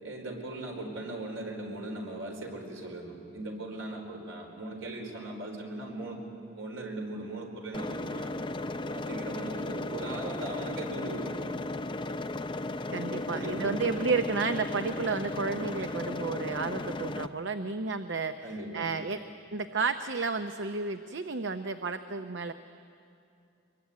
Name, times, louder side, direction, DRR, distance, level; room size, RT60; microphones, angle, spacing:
voice 1, 0.0-6.2 6.5-8.3 8.9-11.6 13.2-14.0 18.4-18.9, right 2 dB, 75° right, 1 dB, 4.6 m, -39 dB
sound 1, 7.7-17.3, left 2 dB, 25° left, 0.6 m, -35 dB
voice 2, 12.9-19.2 19.5-22.5, right 4 dB, 60° right, 9 dB, 0.7 m, -32 dB
24.0 x 22.5 x 9.5 m, 2.6 s
head